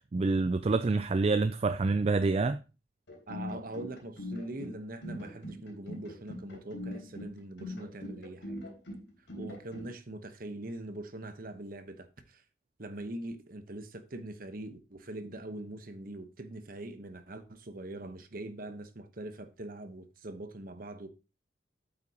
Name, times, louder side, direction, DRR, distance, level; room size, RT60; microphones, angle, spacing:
voice 1, 0.1-2.6, right 3 dB, 35° right, 0.4 m, -27 dB
sound 1, 3.1-9.9, left 1 dB, 80° left, 3.9 m, -42 dB
voice 2, 3.3-8.6 9.4-12.4 12.8-21.1, right 1 dB, 50° right, 1.1 m, -42 dB
8.5 x 8.4 x 2.9 m
head